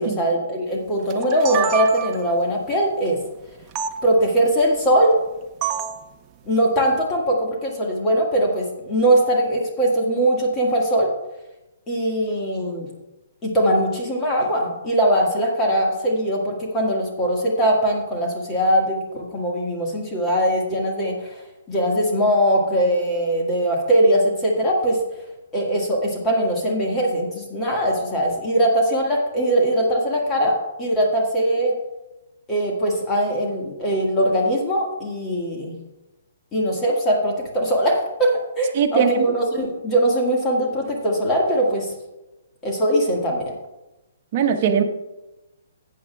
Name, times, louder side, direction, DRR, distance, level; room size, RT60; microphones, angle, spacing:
voice 1, 0.0-3.2 4.0-5.2 6.5-11.1 11.9-12.9 13.4-21.4 21.7-25.0 25.5-31.8 32.5-35.8 36.5-41.9 42.6-43.5, right 1 dB, 20° left, -2 dB, 1.7 m, -21 dB
sound 1, 1.1-2.3 3.8-3.9 5.6-6.0, right 8 dB, 25° right, 0.7 m, -26 dB
voice 2, 38.7-39.3 44.3-44.8, right 8 dB, 45° right, 5 dB, 1.0 m, -20 dB
14.0 x 8.7 x 2.3 m, 1.0 s
hypercardioid pair, 145°, 0 cm